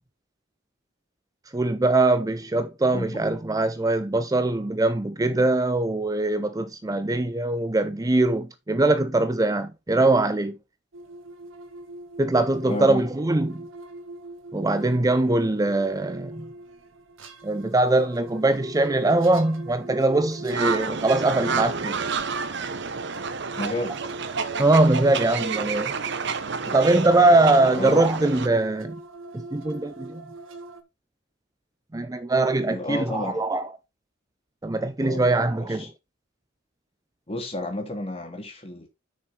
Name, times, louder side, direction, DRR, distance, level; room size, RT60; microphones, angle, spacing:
voice 1, 1.5-10.6 12.2-13.6 14.5-16.5 17.4-22.0 24.6-25.9 26.7-29.0 29.3-30.2 31.9-33.7 34.6-35.8, right 2 dB, 20° right, 0.5 m, -22 dB
voice 2, 2.9-3.2 12.7-13.1 23.5-24.0 27.6-28.1 32.6-33.4 35.0-35.9 37.3-38.9, left 1 dB, 30° left, 3.1 m, -32 dB
sound 1, 10.9-30.8, right 2 dB, 85° right, 1.7 m, -42 dB
sound 2, 20.5-28.5, right 5 dB, 60° right, 1.0 m, -30 dB
9.2 x 6.4 x 4.4 m
head